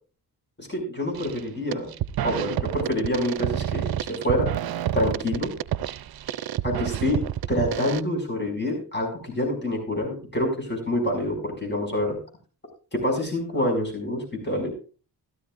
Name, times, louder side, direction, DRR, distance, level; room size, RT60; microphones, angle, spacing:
voice 1, 0.6-1.9 2.2-3.9 4.2-4.5 4.9-5.5 6.6-7.2 7.5-12.2 12.9-14.7, left 1 dB, 25° left, 1 dB, 6.0 m, -27 dB
sound 1, 1.1-1.4 1.7-8.0, right 11 dB, 65° right, 0.6 m, -29 dB
16.5 x 13.0 x 2.5 m, 0.36 s
cardioid pair, 80°, 39 cm